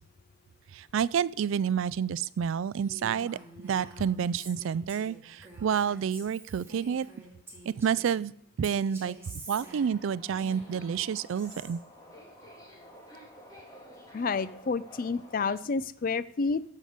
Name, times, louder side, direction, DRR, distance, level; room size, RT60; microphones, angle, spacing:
voice 1, 0.7-7.1 7.7-8.3 8.6-9.2 9.5-11.8, right 7 dB, 60° right, 20 dB, 0.3 m, -29 dB
Female speech woman speaking, 2.8-8.2 8.6-11.7, right 2 dB, 10° right, 2.4 m, -48 dB
Subway metro underground, 9.6-15.5, equal, 15° left, 1.9 m, -51 dB
voice 2, 14.1-16.6, left 4 dB, 40° left, 17 dB, 0.4 m, -30 dB
13.0 x 5.1 x 6.5 m, 0.72 s
head